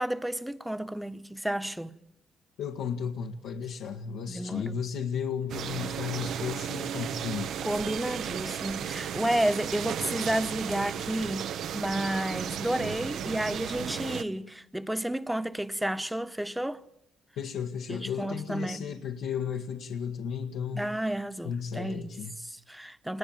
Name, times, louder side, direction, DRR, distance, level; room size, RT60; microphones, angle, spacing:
voice 1, 0.0-1.9 4.3-4.7 7.6-16.8 17.9-18.9 20.8-22.1 22.4-23.2, right 1 dB, 5° right, 1.2 m, -31 dB
voice 2, 2.6-7.5 17.4-21.0 21.4-22.3, left 7 dB, 85° left, 1.7 m, -34 dB
sound 1, 5.5-14.2, right 9 dB, 75° right, 1.0 m, -34 dB
27.5 x 21.0 x 9.0 m
cardioid pair, 90°, 0 cm